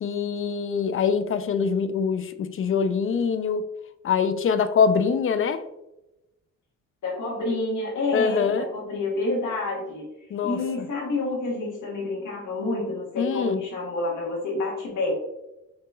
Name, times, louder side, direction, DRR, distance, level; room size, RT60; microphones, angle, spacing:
voice 1, 0.0-3.6 4.0-5.6 8.1-8.7 10.3-10.6 13.2-13.6, left 6 dB, 45° left, 11 dB, 0.5 m, -24 dB
voice 2, 7.0-10.1 10.4-15.1, left 2 dB, 75° left, -3 dB, 1.4 m, -28 dB
6.0 x 2.9 x 2.3 m, 0.93 s
cardioid pair, 75°, 31 cm